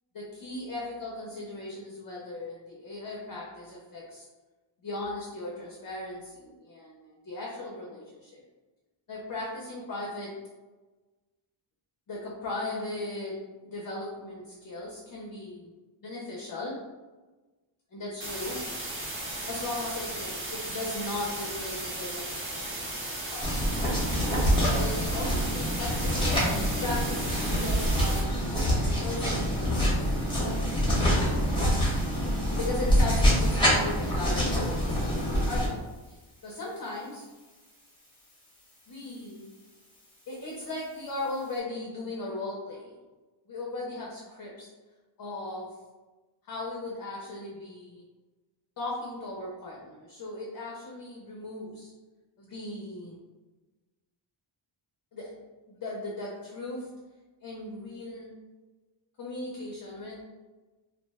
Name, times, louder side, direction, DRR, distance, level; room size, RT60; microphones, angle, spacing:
voice 1, 0.1-4.3 4.8-8.4 9.1-10.4 12.1-15.7 16.0-16.8 17.9-18.6 19.5-22.9 23.3-23.6 24.6-26.4 26.8-31.8 32.6-37.3 38.9-39.4 40.3-43.0 43.5-44.7 45.2-45.7 46.4-48.0 48.8-51.9 52.4-53.2 55.1-55.3 55.7-56.9 57.4-58.4 59.2-60.2, left 2 dB, 45° left, -4 dB, 0.5 m, -37 dB
sound 1, 18.2-28.2, right 1 dB, 25° right, 0.6 m, -36 dB
sound 2, 23.4-35.7, equal, 10° left, 0.8 m, -26 dB
2.4 x 2.1 x 3.4 m, 1.2 s
wide cardioid pair, 155°, 49 cm